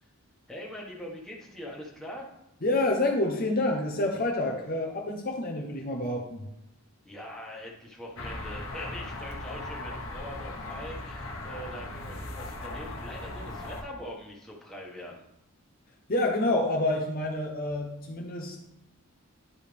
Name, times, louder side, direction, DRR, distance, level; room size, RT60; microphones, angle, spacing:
voice 1, 0.5-2.3 7.0-15.3, equal, ahead, -3 dB, 1.5 m, -42 dB
voice 2, 2.6-6.5 16.1-18.6, left 2 dB, 40° left, 0 dB, 0.9 m, -28 dB
sound 1, 8.2-13.8, left 2 dB, 65° left, 1.3 m, -38 dB
11.0 x 4.7 x 3.5 m, 0.83 s
head